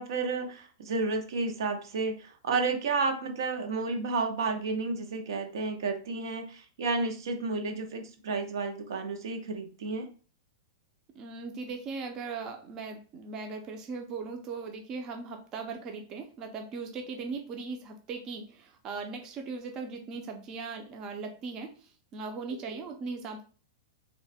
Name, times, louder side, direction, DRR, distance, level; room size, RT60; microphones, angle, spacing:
voice 1, 0.0-10.1 22.7-22.8, right 3 dB, 80° right, 6 dB, 0.8 m, -31 dB
voice 2, 11.1-23.4, right 4 dB, 25° right, 4 dB, 0.4 m, -39 dB
3.1 x 2.1 x 4.1 m, 0.38 s
supercardioid pair, 165°, 2 cm